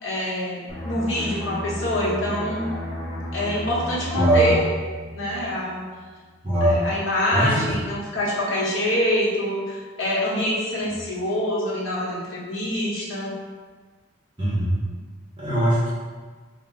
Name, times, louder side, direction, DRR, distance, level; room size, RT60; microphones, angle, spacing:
voice 1, 0.0-2.7 3.3-4.6 5.1-5.9 6.6-13.4, left 1 dB, 85° left, -6 dB, 1.2 m, -25 dB
sound 1, 0.7-6.1 6.4-6.6, equal, 15° left, 0.7 m, -33 dB
voice 2, 4.1-4.6 6.4-6.8 7.3-7.6 14.4-14.8 15.4-15.9, right 1 dB, 25° right, -9 dB, 1.1 m, -20 dB
4.3 x 2.3 x 3.7 m, 1.4 s
head